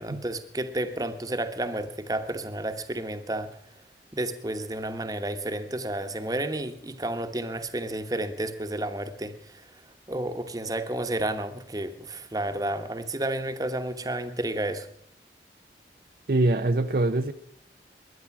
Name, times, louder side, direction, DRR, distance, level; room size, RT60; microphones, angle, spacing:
voice 1, 0.0-3.6 4.1-9.7 10.1-14.9, right 1 dB, 20° right, 8 dB, 1.2 m, -31 dB
voice 2, 16.3-17.3, right 2 dB, 55° right, 8 dB, 0.6 m, -23 dB
21.0 x 10.5 x 5.9 m, 0.67 s
head